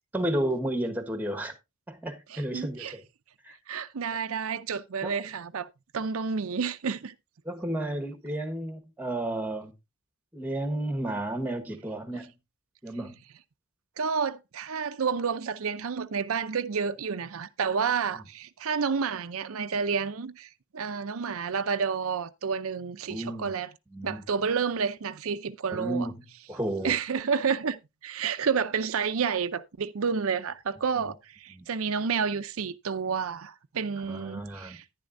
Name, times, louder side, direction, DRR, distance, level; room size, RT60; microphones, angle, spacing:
voice 1, 0.1-1.5 1.9-3.0 3.4-3.6 5.0-5.1 7.4-9.7 10.3-12.3 12.8-13.2 23.1-23.6 23.9-24.2 25.7-26.1 26.5-26.9 31.5-31.7 34.1-34.8, right 1 dB, 10° right, 1.3 m, -32 dB
voice 2, 2.3-3.0 3.7-5.7 5.9-7.1 14.0-23.7 24.0-26.1 26.8-34.8, right 6 dB, 75° right, 0.6 m, -30 dB
10.5 x 10.5 x 2.6 m
head